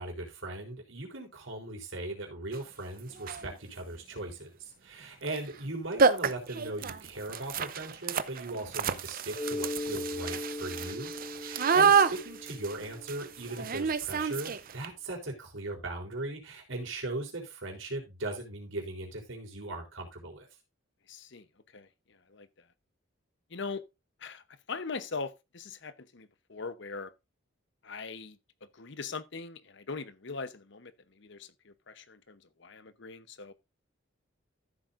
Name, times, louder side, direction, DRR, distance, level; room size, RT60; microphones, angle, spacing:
voice 1, 0.0-20.5, right 2 dB, 80° right, 3.8 m, -39 dB
sound 1, 2.5-2.6 3.2-3.5 5.2-5.4 5.7-5.8 6.0-14.9, right 6 dB, 45° right, 0.7 m, -29 dB
Mallet percussion, 9.3-13.8, left 2 dB, 25° left, 2.3 m, -39 dB
voice 2, 21.1-21.4 21.7-21.9 22.3-22.5 23.5-23.8 24.2-24.4 24.7-27.1 27.8-28.4 28.7-33.5, left 4 dB, 65° left, 1.0 m, -41 dB
14.0 x 7.7 x 2.6 m
head